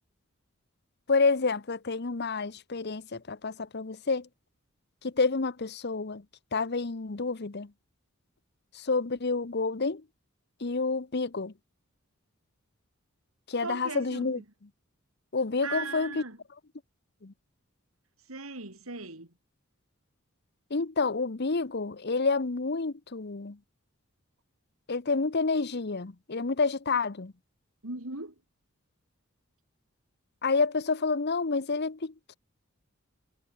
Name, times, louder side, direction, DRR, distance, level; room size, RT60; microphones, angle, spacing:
voice 1, 1.1-4.3 5.0-6.2 6.5-7.7 8.7-10.0 10.6-11.5 13.5-14.4 15.3-16.2 17.2-17.3 20.7-23.6 24.9-27.3 30.4-32.3, left 4 dB, 50° left, 0.9 m, -29 dB
voice 2, 13.6-14.4 15.6-16.4 18.3-19.3 27.8-28.3, right 3 dB, 85° right, 4.6 m, -38 dB
head